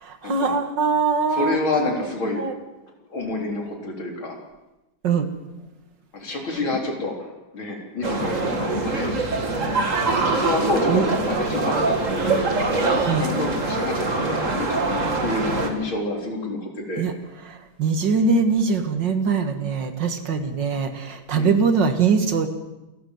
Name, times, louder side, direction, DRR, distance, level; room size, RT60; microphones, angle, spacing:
voice 1, 0.0-1.6 2.4-2.5 5.0-5.3 10.9-11.0 13.1-13.2 17.0-17.1 17.5-22.5, right 5 dB, 65° right, 8 dB, 2.3 m, -22 dB
voice 2, 1.3-2.4 3.1-4.4 6.1-9.1 10.3-12.4 13.0-17.0 21.3-21.5, left 2 dB, 85° left, 1 dB, 4.5 m, -28 dB
sound 1, 8.0-15.7, right 3 dB, 40° right, 2.5 m, -23 dB
27.5 x 12.5 x 7.9 m, 1.0 s
omnidirectional pair, 2.2 m